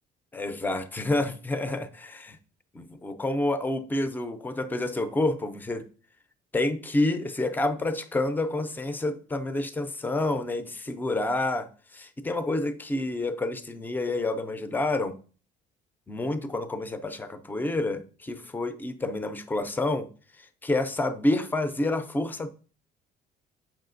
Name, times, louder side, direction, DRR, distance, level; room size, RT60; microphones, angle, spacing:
voice 1, 0.3-2.4 2.7-5.9 6.5-15.2 16.1-20.1 20.4-22.5, left 2 dB, 10° left, 0.5 m, -28 dB
7.2 x 5.6 x 2.5 m
cardioid pair, 110°, 17 cm